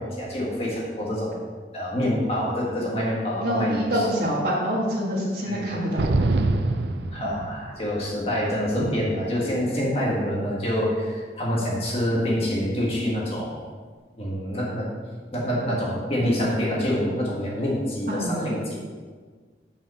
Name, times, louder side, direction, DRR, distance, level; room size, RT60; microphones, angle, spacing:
voice 1, 0.0-1.5 1.7-4.1 5.4-6.1 7.1-13.6 14.2-14.9 15.3-18.8, equal, 35° left, -4 dB, 1.7 m, -26 dB
voice 2, 3.4-6.2 8.8-8.9 18.1-18.5, equal, 60° right, -10 dB, 1.9 m, -26 dB
sound 1, 6.0-7.9, right 2 dB, 80° right, 0.6 m, -24 dB
7.2 x 5.5 x 7.0 m, 1.5 s
head